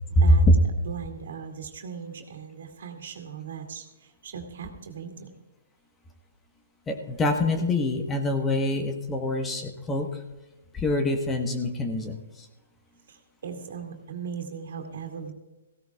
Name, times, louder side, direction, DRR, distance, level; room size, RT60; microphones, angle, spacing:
voice 1, 0.8-5.3 13.1-15.3, right 7 dB, 65° right, 4 dB, 2.3 m, -38 dB
voice 2, 6.9-10.1 10.7-12.2, left 2 dB, 15° left, 5 dB, 1.2 m, -27 dB
18.0 x 16.0 x 2.4 m, 1.1 s
figure-of-eight pair, 125°, 0 cm